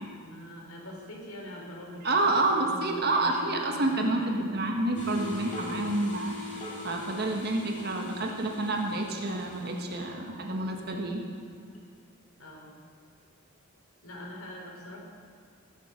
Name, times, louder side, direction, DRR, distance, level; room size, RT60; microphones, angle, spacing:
voice 1, 0.2-4.3 12.4-12.7 14.0-15.0, equal, 85° left, -1 dB, 3.5 m, -44 dB
voice 2, 2.0-11.2, right 2 dB, 45° right, 2 dB, 1.5 m, -29 dB
sound 1, 4.9-11.9, left 2 dB, 35° left, 2.3 m, -42 dB
20.5 x 7.7 x 6.3 m, 2.2 s
head